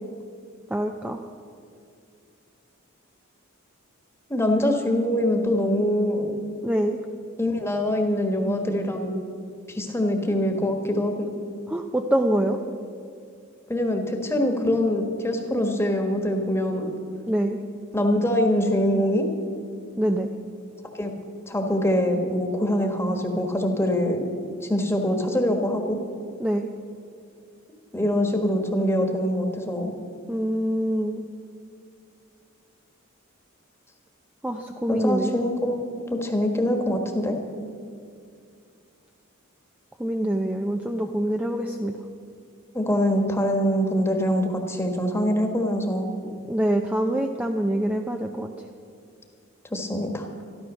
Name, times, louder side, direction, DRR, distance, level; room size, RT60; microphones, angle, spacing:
voice 1, 0.7-1.2 6.6-7.0 11.7-12.6 17.3-17.6 20.0-20.3 26.4-26.7 30.3-31.2 34.4-35.3 40.0-41.9 46.5-48.5, right 1 dB, 5° right, 3 dB, 0.5 m, -25 dB
voice 2, 4.3-6.3 7.4-9.1 9.7-11.3 13.7-16.9 17.9-19.3 21.0-21.1 21.5-24.2 24.6-26.0 27.9-29.9 34.9-35.8 36.1-37.4 42.7-46.1 49.7-50.3, left 1 dB, 10° left, 3 dB, 1.4 m, -24 dB
13.0 x 13.0 x 6.3 m, 2.3 s
head